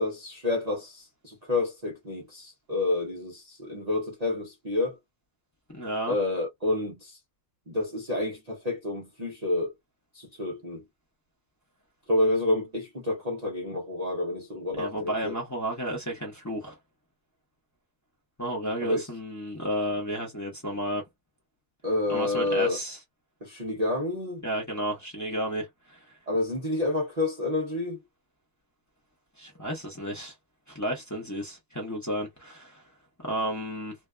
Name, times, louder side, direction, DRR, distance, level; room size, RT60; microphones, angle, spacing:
voice 1, 0.0-4.9 6.1-7.2 7.7-9.7 10.1-10.8 12.1-15.4 18.8-19.0 21.8-22.8 23.4-24.4 26.3-28.0, left 2 dB, 40° right, 0.5 m, -29 dB
voice 2, 5.7-6.1 14.8-16.8 18.4-21.0 22.1-23.0 24.4-26.0 29.4-30.3 30.7-32.8 33.2-33.9, equal, 20° left, 0.5 m, -32 dB
2.7 x 2.2 x 2.2 m
omnidirectional pair, 1.6 m